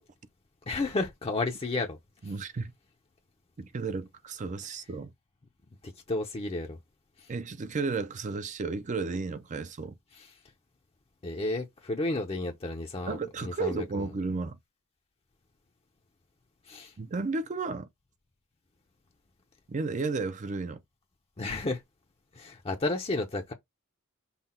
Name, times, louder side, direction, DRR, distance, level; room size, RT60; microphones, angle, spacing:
voice 1, 0.7-2.0 5.8-6.8 7.2-7.3 10.1-10.3 11.2-14.1 16.7-16.9 21.4-21.8 22.3-23.5, left 2 dB, 25° left, 0.6 m, -32 dB
voice 2, 2.2-2.7 3.6-5.1 7.3-10.0 13.1-14.6 17.0-17.9 19.7-20.8, right 4 dB, 35° right, 0.4 m, -33 dB
5.6 x 2.2 x 4.2 m
head